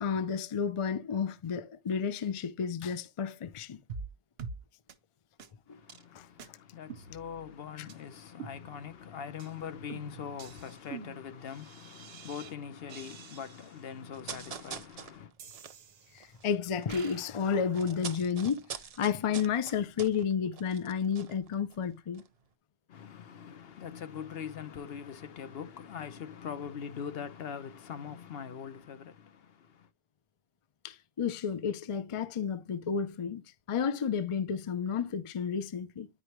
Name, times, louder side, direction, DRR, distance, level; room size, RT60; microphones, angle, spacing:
voice 1, 0.0-3.8 5.7-5.8 6.1-6.3 16.1-18.7 19.0-22.2 30.8-33.4 33.7-36.1, left 7 dB, 40° left, 0.5 m, -31 dB
sound 1, 3.9-4.1 4.4-4.6 4.9-5.0 5.4-5.5 5.9-6.0 6.4-6.5 6.9-7.5 7.9-8.0 8.4-9.0 9.4-9.5 9.9-12.5 12.9-13.8 14.4-14.5 15.4-16.4 16.9-17.2, right 5 dB, 70° right, 1.0 m, -46 dB
voice 2, 5.7-15.3 22.9-29.9, left 7 dB, 70° left, 0.9 m, -42 dB
sound 2, 14.1-17.0 17.3-21.9 22.1-22.3, right 6 dB, 45° right, 0.6 m, -45 dB
9.8 x 5.0 x 3.0 m
omnidirectional pair, 1.1 m